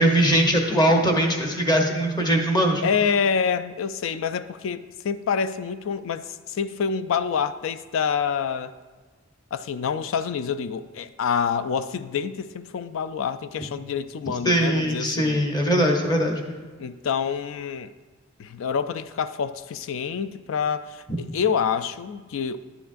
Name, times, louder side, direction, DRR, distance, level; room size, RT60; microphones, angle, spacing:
voice 1, 0.0-2.8 14.4-16.4, right 1 dB, 20° left, 2 dB, 0.9 m, -21 dB
voice 2, 2.8-8.7 9.5-15.4 16.8-17.9 18.4-22.6, left 6 dB, 70° left, 14 dB, 0.3 m, -27 dB
10.5 x 6.9 x 2.5 m, 1.4 s
head